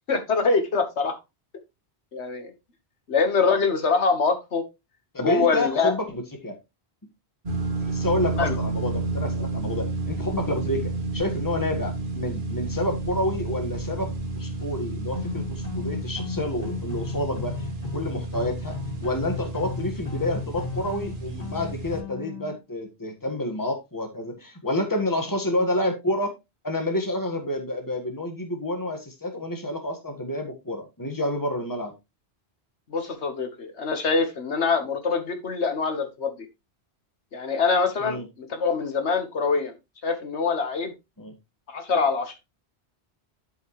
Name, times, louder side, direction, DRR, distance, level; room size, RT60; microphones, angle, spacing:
voice 1, 0.1-1.2 2.1-2.5 3.1-4.6 5.2-5.9 8.4-8.6 32.9-36.3 37.3-39.7 40.0-40.9 41.7-42.3, left 4 dB, 85° left, 7 dB, 1.6 m, -24 dB
voice 2, 5.1-6.6 7.8-17.6 17.9-18.8 19.0-26.3 26.6-31.9 38.0-38.2 41.2-41.3, left 1 dB, 20° left, 4 dB, 1.6 m, -29 dB
sound 1, 7.4-22.0, right 2 dB, 50° right, 1.6 m, -31 dB
sound 2, 15.1-22.5, left 5 dB, 35° left, 1.6 m, -35 dB
11.5 x 5.4 x 3.1 m, 0.24 s
omnidirectional pair, 1.1 m